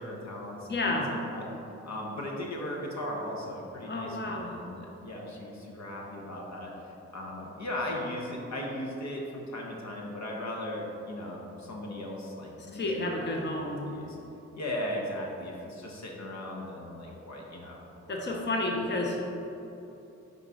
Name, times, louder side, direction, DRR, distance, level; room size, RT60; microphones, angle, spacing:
voice 1, 0.0-1.5 1.8-13.3 13.6-14.2 14.5-18.5 18.8-18.9, left 1 dB, 65° left, -1 dB, 1.0 m, -38 dB
voice 2, 0.7-1.1 3.9-4.5 12.7-13.9 18.1-19.3, left 2 dB, 35° left, 0 dB, 0.9 m, -31 dB
5.3 x 4.1 x 4.9 m, 2.9 s
cardioid pair, 50°, 30 cm